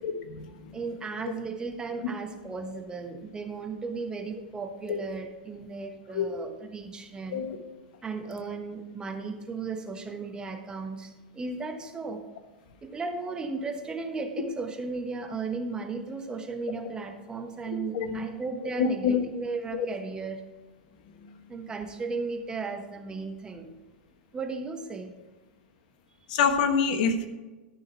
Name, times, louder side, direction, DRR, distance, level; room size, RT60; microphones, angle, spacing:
voice 1, 0.0-0.5 4.9-5.0 6.1-6.3 7.3-7.6 17.7-18.2 18.8-19.2 19.7-19.9 26.3-27.3, left 6 dB, 60° left, 7 dB, 1.2 m, -26 dB
voice 2, 0.7-7.5 8.0-12.2 12.8-20.4 21.5-23.7 24.3-25.1, right 4 dB, 15° right, 5 dB, 1.3 m, -35 dB
13.0 x 6.5 x 4.5 m, 1.2 s
hypercardioid pair, 100°, 5 cm